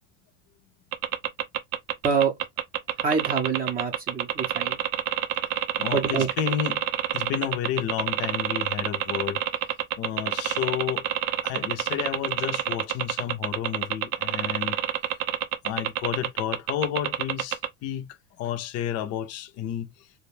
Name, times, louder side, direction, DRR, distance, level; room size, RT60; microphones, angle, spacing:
sound 1, 0.9-17.7, right 12 dB, 90° right, 0.7 m, -27 dB
voice 1, 3.0-4.8 5.9-6.3, right 6 dB, 25° right, 0.6 m, -25 dB
voice 2, 5.8-6.9 7.1-9.4 10.0-11.1 11.4-14.8 15.6-18.1 18.4-20.1, left 10 dB, 40° left, 0.6 m, -31 dB
2.5 x 2.2 x 3.2 m
supercardioid pair, 135°, 38 cm